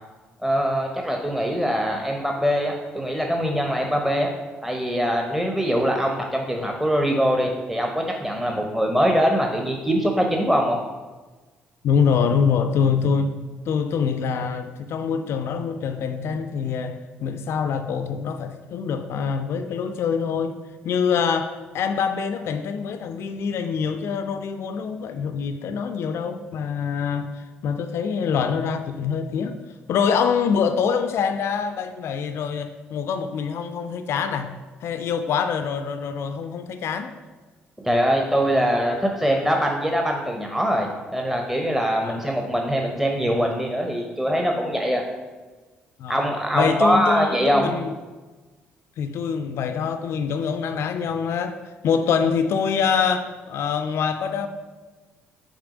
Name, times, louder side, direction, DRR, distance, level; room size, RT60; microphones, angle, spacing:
voice 1, 0.4-4.3 4.6-10.8 37.8-45.0 46.1-47.7, equal, 5° right, 2 dB, 0.8 m, -23 dB
voice 2, 11.8-13.3 13.7-20.6 20.8-29.6 29.9-34.5 34.8-37.1 42.0-42.2 46.0-46.2 46.5-48.0 49.0-51.6 51.8-54.5, left 6 dB, 55° left, 9 dB, 0.4 m, -25 dB
6.3 x 3.4 x 4.8 m, 1.3 s
figure-of-eight pair, 45°, 5 cm